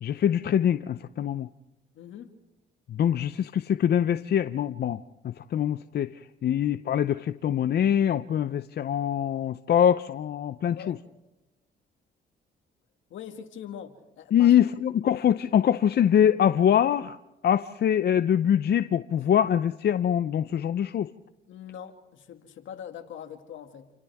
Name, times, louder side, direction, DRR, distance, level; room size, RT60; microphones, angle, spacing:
voice 1, 0.0-1.5 2.9-11.0 14.3-17.2 17.4-21.1, left 9 dB, 55° left, 11 dB, 0.6 m, -24 dB
voice 2, 1.9-2.3 10.8-10.9 13.1-14.5 21.5-23.9, left 9 dB, 75° left, 5 dB, 2.3 m, -42 dB
29.5 x 28.5 x 3.6 m, 1.0 s
cardioid pair, 90°, 20 cm